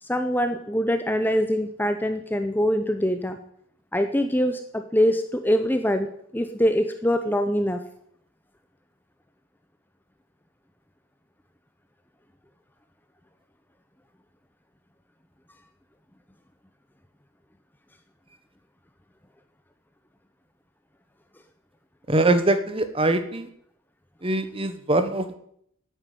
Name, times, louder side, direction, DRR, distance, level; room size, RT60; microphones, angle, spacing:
voice 1, 0.0-3.4 3.9-7.8, equal, 10° left, 7 dB, 0.7 m, -24 dB
voice 2, 22.1-23.5 24.2-25.3, right 2 dB, 25° right, 10 dB, 1.1 m, -23 dB
9.7 x 9.2 x 9.2 m, 0.69 s
head